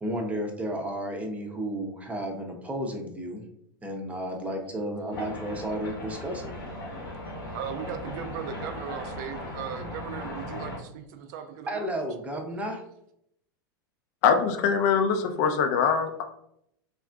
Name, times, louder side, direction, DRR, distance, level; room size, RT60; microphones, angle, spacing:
voice 1, 0.0-3.4 3.8-6.5 11.7-12.8, right 1 dB, 10° right, 0.6 m, -32 dB
sound 1, 5.1-10.8, left 1 dB, 80° left, 0.9 m, -37 dB
voice 2, 7.5-11.9, right 8 dB, 55° right, 0.4 m, -37 dB
voice 3, 14.2-16.2, left 6 dB, 50° left, 0.4 m, -23 dB
3.5 x 2.4 x 2.2 m
hypercardioid pair, 95°, 12 cm